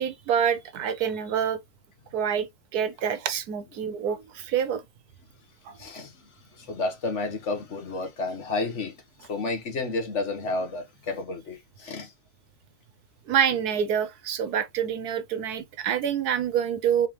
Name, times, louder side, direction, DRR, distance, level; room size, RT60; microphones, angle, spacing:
voice 1, 0.0-1.6 2.1-4.8 5.7-5.8 13.3-17.1, right 8 dB, 85° right, 1.4 m, -27 dB
voice 2, 5.8-6.1 6.6-8.9 9.3-12.1, left 3 dB, 50° left, 1.3 m, -31 dB
4.0 x 3.6 x 3.0 m
omnidirectional pair, 1.6 m